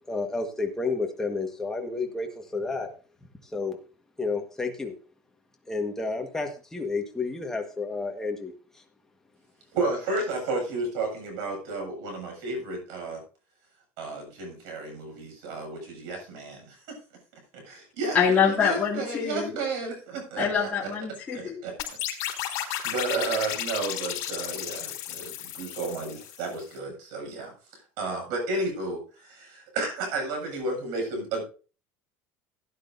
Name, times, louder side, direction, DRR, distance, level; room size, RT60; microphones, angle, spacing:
voice 1, 0.1-2.9 3.5-3.8 4.2-4.9 5.7-8.5, left 3 dB, 5° left, 2 dB, 1.5 m, -30 dB
voice 2, 9.7-13.2 14.0-17.0 17.5-20.9 21.3-21.7 22.5-27.5 28.0-31.4, right 3 dB, 75° right, 3 dB, 7.3 m, -32 dB
voice 3, 18.1-19.5 20.4-21.6, left 7 dB, 25° left, -5 dB, 2.5 m, -25 dB
sound 1, 21.8-26.6, left 12 dB, 60° left, 3.9 m, -33 dB
16.5 x 10.0 x 2.7 m, 0.37 s
cardioid pair, 150°, 7 cm